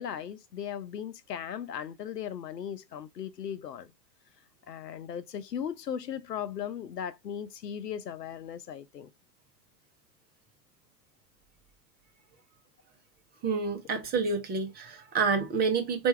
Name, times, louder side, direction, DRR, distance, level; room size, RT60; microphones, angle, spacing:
voice 1, 0.0-3.9 4.7-9.1, left 8 dB, 75° left, 0.7 m, -37 dB
voice 2, 13.4-16.1, right 5 dB, 20° right, 0.8 m, -28 dB
4.4 x 2.7 x 3.2 m
figure-of-eight pair, 100°, 49 cm